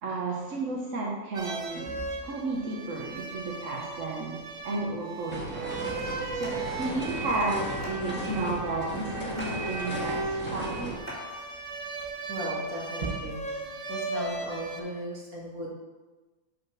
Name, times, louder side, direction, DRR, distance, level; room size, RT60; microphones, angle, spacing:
voice 1, 0.0-5.7 6.1-11.0, right 3 dB, 60° right, -3 dB, 1.3 m, -33 dB
sound 1, 1.3-14.8, right 3 dB, 35° right, 0.5 m, -36 dB
sound 2, 5.3-11.0, equal, 5° left, 1.5 m, -36 dB
sound 3, 6.3-11.9, right 1 dB, 10° right, 2.8 m, -47 dB
voice 2, 12.3-13.4 13.9-15.7, equal, 75° right, -4 dB, 2.3 m, -36 dB
5.8 x 5.2 x 6.0 m, 1.2 s
omnidirectional pair, 1.6 m